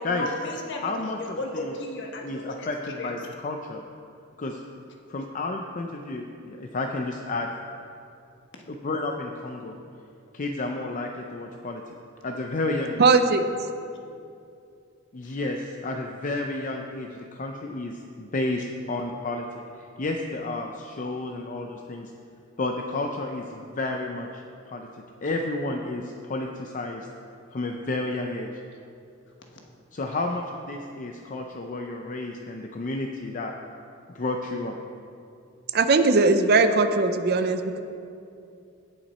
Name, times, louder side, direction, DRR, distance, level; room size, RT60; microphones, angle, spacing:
voice 1, 0.0-0.9 1.2-2.7 3.0-3.1 15.2-15.3, left 1 dB, 60° left, 1 dB, 1.3 m, -34 dB
voice 2, 0.8-1.7 2.2-3.8 4.4-4.6 5.1-7.5 8.8-9.8 10.3-11.8 12.2-13.1 15.1-19.4 20.0-22.1 22.6-24.9 25.2-27.1 27.5-28.5 29.9-33.5 34.1-34.7, left 2 dB, 40° left, 2 dB, 0.5 m, -31 dB
voice 3, 13.0-13.4 35.7-37.8, right 3 dB, 50° right, 9 dB, 0.6 m, -19 dB
17.0 x 5.8 x 4.2 m, 2.6 s
head